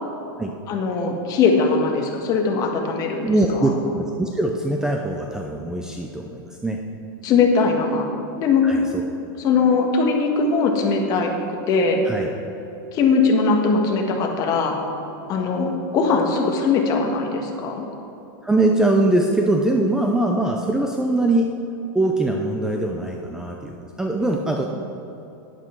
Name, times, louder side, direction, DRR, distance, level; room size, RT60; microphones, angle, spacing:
voice 1, 0.7-3.3 7.2-8.1 8.4-8.6 9.4-11.3 11.7-12.0 12.9-14.8 15.3-17.9, left 4 dB, 30° left, 2 dB, 1.5 m, -20 dB
voice 2, 3.2-6.8 8.6-9.0 12.0-12.3 18.4-21.5 21.9-24.6, right 2 dB, 5° right, 1 dB, 0.5 m, -22 dB
11.0 x 10.0 x 4.5 m, 3.0 s
supercardioid pair, 155°, 12 cm